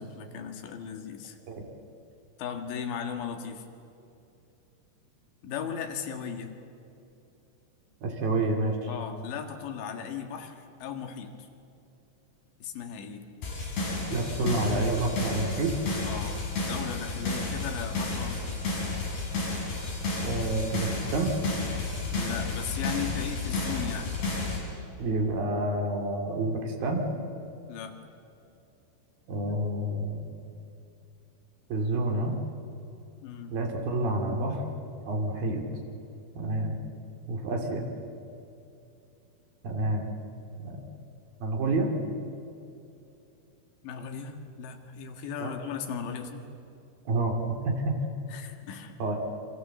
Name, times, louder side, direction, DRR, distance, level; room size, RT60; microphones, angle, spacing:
voice 1, 0.0-1.4 2.4-3.6 5.4-6.5 8.9-11.3 12.6-13.3 16.0-18.6 22.1-24.1 27.7-27.9 33.2-33.6 43.8-46.5 48.3-48.9, left 7 dB, 90° left, 5 dB, 4.0 m, -37 dB
voice 2, 8.0-8.8 14.1-15.8 20.2-21.4 25.0-27.1 29.3-30.2 31.7-32.4 33.5-34.6 35.1-35.6 36.4-36.8 37.3-37.9 39.6-40.1 40.6-40.8 41.4-41.9 45.4-45.5 47.1-48.0 49.0-49.2, right 2 dB, 60° right, 2 dB, 4.1 m, -28 dB
sound 1, 13.4-24.6, left 3 dB, 70° left, 8.0 m, -32 dB
28.5 x 24.5 x 7.7 m, 2.7 s
omnidirectional pair, 5.0 m